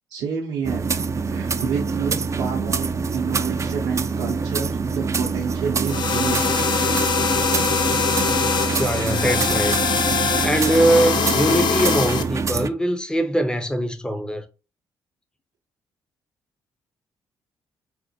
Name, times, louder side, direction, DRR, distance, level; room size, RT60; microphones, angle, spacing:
voice 1, 0.1-0.9 1.3-6.6, right 6 dB, 70° right, 0.7 m, -30 dB
sound 1, 0.6-12.7, right 5 dB, 35° right, 0.4 m, -25 dB
sound 2, 5.9-12.2, left 6 dB, 55° left, 0.5 m, -23 dB
voice 2, 8.7-14.4, right 1 dB, 10° left, 0.6 m, -22 dB
4.2 x 2.1 x 2.7 m
hypercardioid pair, 50°, 9 cm